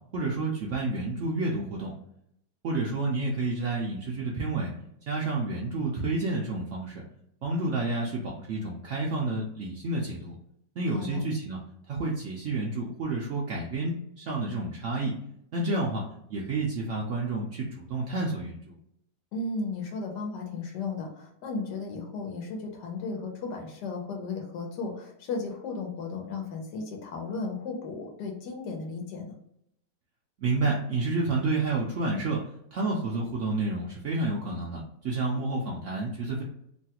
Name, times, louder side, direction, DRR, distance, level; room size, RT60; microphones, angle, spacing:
voice 1, 0.1-1.9 2.6-4.7 5.1-7.0 7.4-10.3 10.8-11.6 11.9-15.2 15.5-18.7 30.4-32.4 32.7-36.4, right 2 dB, 80° right, -3 dB, 0.6 m, -30 dB
voice 2, 10.9-11.2 19.3-29.4, left 4 dB, 70° left, 2 dB, 1.3 m, -35 dB
3.2 x 2.3 x 2.8 m, 0.74 s
omnidirectional pair, 1.9 m